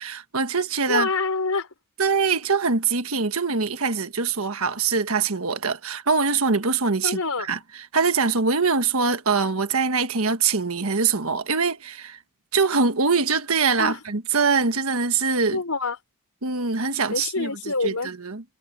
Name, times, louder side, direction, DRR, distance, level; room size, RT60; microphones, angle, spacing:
voice 1, 0.0-1.1 2.0-7.2 7.5-7.6 7.9-12.2 12.5-15.6 16.4-17.5 17.8-18.4, right 5 dB, 70° right, 1.5 m, -23 dB
voice 2, 0.9-1.7 7.0-7.5 13.8-14.0 15.5-16.0 17.1-18.1, left 3 dB, 80° left, 4.1 m, -26 dB
head